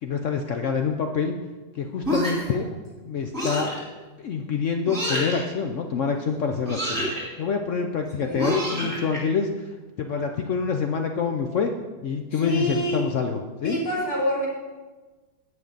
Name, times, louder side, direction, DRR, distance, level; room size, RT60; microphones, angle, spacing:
voice 1, 0.0-1.3 1.7-2.7 3.0-3.7 4.2-7.1 7.4-9.7 10.0-11.7 12.0-13.8, left 5 dB, 75° left, 4 dB, 0.6 m, -26 dB
sound 1, 2.0-2.6 3.3-3.8 4.9-5.4 6.6-7.2 8.4-9.2, equal, 10° right, 3.3 m, -27 dB
voice 2, 12.3-13.0 13.6-14.5, left 1 dB, 50° left, -7 dB, 3.6 m, -26 dB
17.5 x 5.9 x 3.9 m, 1.3 s
omnidirectional pair, 2.0 m